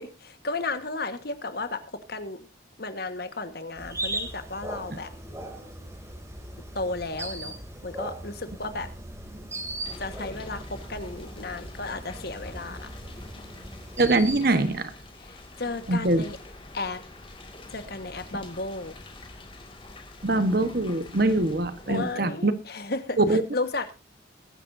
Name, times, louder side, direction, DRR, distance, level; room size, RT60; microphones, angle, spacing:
voice 1, 0.0-2.4 2.8-5.1 6.7-7.5 7.8-8.9 10.0-12.9 15.3-16.4 16.7-17.0 17.7-18.9 21.9-23.2 23.5-23.9, left 3 dB, 55° left, 10 dB, 1.5 m, -33 dB
sound 1, 3.8-14.4, right 1 dB, 15° right, 2.8 m, -38 dB
sound 2, 9.8-22.1, left 2 dB, 25° left, 2.2 m, -46 dB
voice 2, 14.0-14.9 15.9-16.2 20.2-22.5 23.2-23.4, right 2 dB, 50° right, 11 dB, 1.3 m, -23 dB
22.0 x 11.0 x 2.7 m, 0.28 s
head